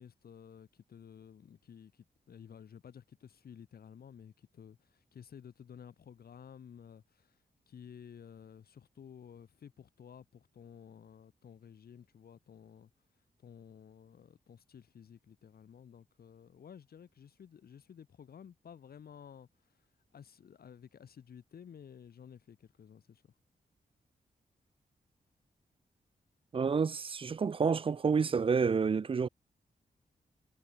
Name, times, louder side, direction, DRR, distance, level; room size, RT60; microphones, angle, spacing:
voice 1, 0.0-7.4 7.7-12.9 13.4-19.5 20.1-23.2, left 8 dB, 85° left, 7.0 m, -53 dB
voice 2, 26.5-29.3, right 5 dB, 35° right, 0.6 m, -29 dB
wide cardioid pair, 160°, 15 cm